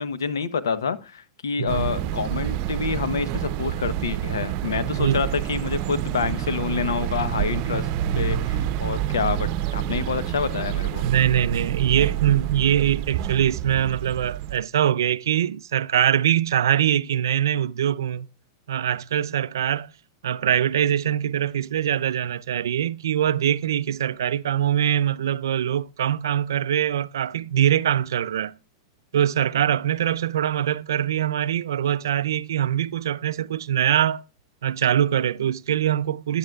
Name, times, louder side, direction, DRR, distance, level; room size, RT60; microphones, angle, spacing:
voice 1, 0.0-7.9 8.1-11.0, left 6 dB, 90° left, 0.9 m, -27 dB
voice 2, 1.6-1.9 5.0-5.2 11.0-18.3 18.7-19.9 20.2-28.6 29.1-34.2 34.6-36.4, right 10 dB, 80° right, 0.4 m, -23 dB
sound 1, 1.7-14.6, right 12 dB, 50° right, 0.7 m, -28 dB
12.5 x 10.5 x 2.3 m
hypercardioid pair, 115°, 2 cm